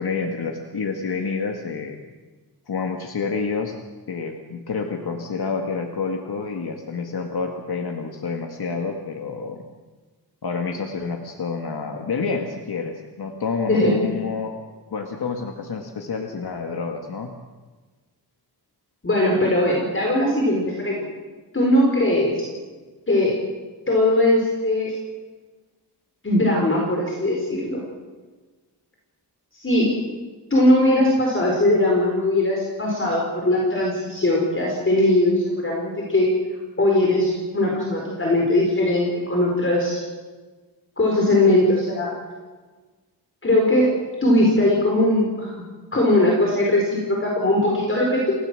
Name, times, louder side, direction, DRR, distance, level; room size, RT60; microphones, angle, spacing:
voice 1, 0.0-2.0 2.7-3.8 4.1-9.6 10.4-14.5 14.9-17.3, left 4 dB, 65° left, 3 dB, 1.9 m, -28 dB
voice 2, 19.0-21.1 21.5-22.5 23.1-23.4 23.9-24.9 26.2-27.8 29.6-30.0 30.5-36.3 36.8-40.0 41.0-42.1 43.4-45.6 45.9-48.3, left 1 dB, 30° left, -1 dB, 4.6 m, -20 dB
29.0 x 16.5 x 7.7 m, 1.3 s
wide cardioid pair, 160°, 41 cm